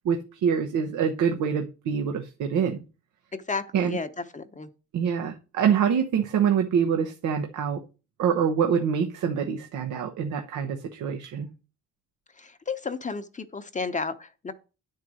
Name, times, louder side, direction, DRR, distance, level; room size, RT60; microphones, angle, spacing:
voice 1, 0.0-2.8 3.7-4.0 4.9-7.8 8.2-11.5, right 7 dB, 80° right, 1.0 m, -25 dB
voice 2, 3.3-4.7 12.4-14.5, left 4 dB, 25° left, 0.8 m, -33 dB
9.5 x 4.7 x 6.2 m
cardioid pair, 90°, 30 cm